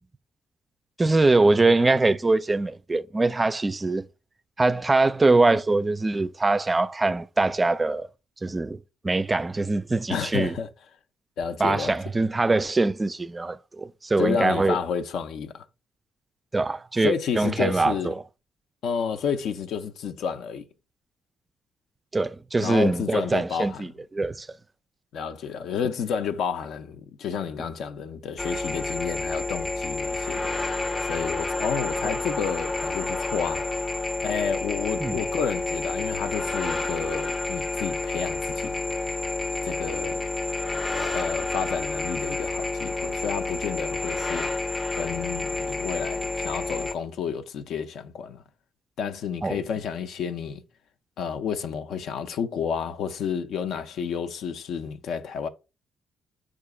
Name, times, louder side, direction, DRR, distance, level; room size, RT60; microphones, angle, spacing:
voice 1, 1.0-4.1 4.6-8.1 8.4-10.6 11.6-14.8 16.5-18.1 22.1-24.5 32.0-32.1 35.0-35.2 49.4-49.6, right 3 dB, 20° right, 0.3 m, -23 dB
voice 2, 10.1-10.7 11.4-12.0 14.2-15.6 17.0-18.1 18.8-20.6 22.6-23.8 25.1-30.5 31.0-33.7 34.2-38.8 39.6-40.2 41.1-44.5 44.9-48.4 49.0-50.6 51.2-55.5, left 6 dB, 75° left, 0.5 m, -30 dB
sound 1, 28.4-46.9, left 3 dB, 30° left, 0.6 m, -29 dB
4.7 x 2.4 x 4.7 m
cardioid pair, 90°, 0 cm